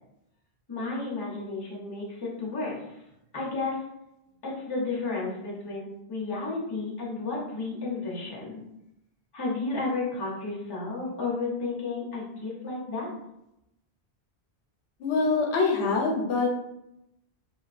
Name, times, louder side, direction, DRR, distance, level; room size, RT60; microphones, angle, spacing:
voice 1, 0.7-2.9 3.3-3.8 4.4-8.6 9.3-13.1, left 3 dB, 25° left, -5 dB, 0.7 m, -32 dB
voice 2, 15.0-16.5, left 4 dB, 90° left, 0 dB, 0.8 m, -24 dB
2.4 x 2.2 x 2.3 m, 0.83 s
omnidirectional pair, 1.1 m